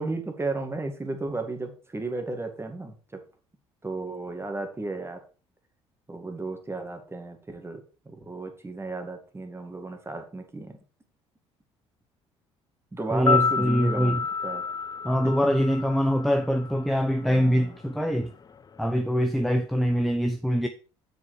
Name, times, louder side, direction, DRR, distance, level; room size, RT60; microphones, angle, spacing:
voice 1, 0.0-3.2 3.8-5.2 6.1-7.8 8.1-10.8 12.9-14.6 15.4-15.5 17.2-17.8, right 3 dB, 15° right, 2.2 m, -34 dB
sound 1, 13.1-17.3 17.5-17.7, left 5 dB, 25° left, 0.6 m, -29 dB
voice 2, 13.1-14.2 15.0-18.3 18.8-20.7, equal, ahead, 0.9 m, -24 dB
7.2 x 6.4 x 4.8 m
hypercardioid pair, 55°, 15 cm